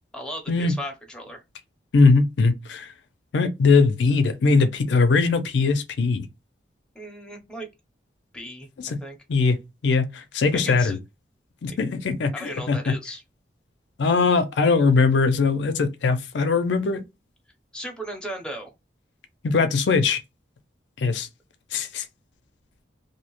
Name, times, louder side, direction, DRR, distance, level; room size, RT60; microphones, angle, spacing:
voice 1, 0.1-1.4 6.9-7.7 8.3-9.2 10.5-11.0 11.7-11.8 12.3-13.2 17.7-18.7, equal, 5° left, 0.6 m, -36 dB
voice 2, 1.9-2.9 3.3-6.3 8.8-9.0 9.3-9.6 9.8-11.0 11.6-12.9 14.0-17.0 19.4-20.2 21.0-21.3 21.7-22.0, left 4 dB, 80° left, 0.4 m, -20 dB
2.6 x 2.1 x 2.9 m
head